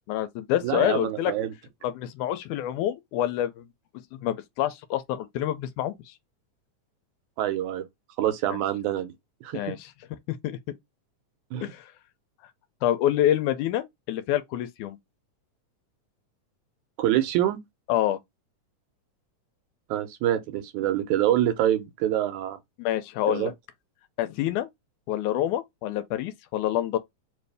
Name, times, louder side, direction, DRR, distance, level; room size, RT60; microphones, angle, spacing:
voice 1, 0.1-1.3 1.8-3.7 4.1-5.9 8.5-8.6 9.5-9.9 10.3-10.6 11.6-11.8 12.8-15.0 17.9-18.2 22.8-23.5 24.2-24.7 25.1-27.0, left 12 dB, 80° left, 2.0 m, -27 dB
voice 2, 0.6-1.5 7.4-7.8 8.2-9.1 9.4-9.7 11.5-11.7 17.0-17.6 19.9-22.6 23.3-23.5, right 12 dB, 80° right, 2.0 m, -26 dB
4.6 x 2.6 x 3.3 m
omnidirectional pair, 3.6 m